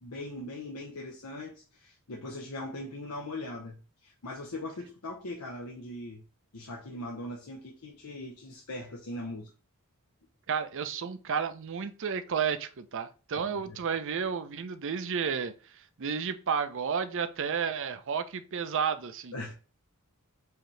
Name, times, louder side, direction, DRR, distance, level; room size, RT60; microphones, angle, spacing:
voice 1, 0.0-6.2 6.5-9.5 13.7-13.8 19.3-19.5, left 1 dB, 90° left, 0.8 m, -40 dB
voice 2, 10.5-19.5, right 6 dB, 60° right, 0.5 m, -32 dB
4.8 x 2.8 x 3.1 m
head